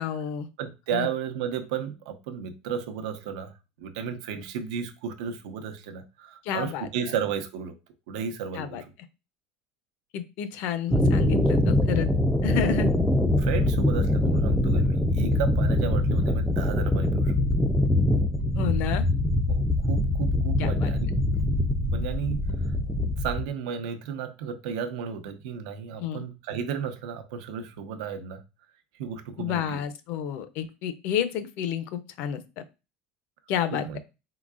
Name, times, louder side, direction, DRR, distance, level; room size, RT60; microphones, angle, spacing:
voice 1, 0.0-0.5 0.9-1.1 6.4-6.9 8.5-8.8 10.1-12.1 12.4-12.9 18.6-19.0 20.6-20.9 26.0-26.2 29.4-32.4 33.5-34.0, left 9 dB, 50° left, 0.5 m, -30 dB
voice 2, 0.6-7.7 8.1-8.9 13.4-17.4 19.5-21.1 21.9-22.7 23.2-28.4 29.0-29.8 33.7-34.0, right 7 dB, 85° right, 0.7 m, -33 dB
sound 1, 10.9-23.4, left 1 dB, ahead, 0.4 m, -23 dB
4.6 x 3.8 x 2.4 m
cardioid pair, 170°, 4 cm